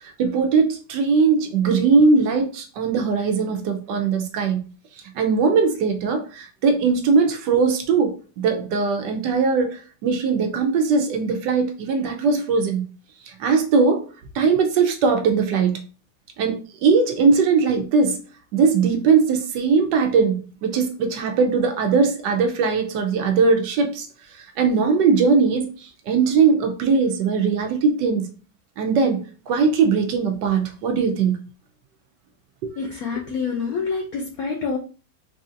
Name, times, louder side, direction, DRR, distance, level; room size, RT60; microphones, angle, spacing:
voice 1, 0.2-4.6 5.1-12.8 13.3-14.1 14.3-15.8 16.4-18.2 18.5-24.1 24.6-28.3 28.8-31.4 32.6-32.8, right 5 dB, 75° right, 1.2 m, -20 dB
voice 2, 32.8-34.8, left 5 dB, 70° left, 0.9 m, -27 dB
4.0 x 2.7 x 2.5 m
omnidirectional pair, 2.0 m